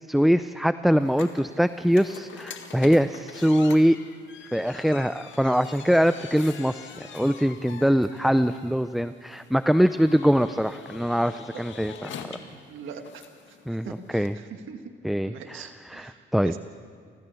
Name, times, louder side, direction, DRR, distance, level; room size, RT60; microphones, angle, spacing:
voice 1, 0.1-4.0 4.5-12.2 13.7-14.4 15.0-16.5, equal, ahead, 12 dB, 0.4 m, -23 dB
sound 1, 1.0-14.3, left 7 dB, 70° left, 2.0 m, -44 dB
voice 2, 12.7-14.8 15.3-16.6, right 6 dB, 80° right, 6 dB, 1.6 m, -42 dB
29.0 x 14.0 x 7.0 m, 2.1 s
cardioid pair, 90°, 20 cm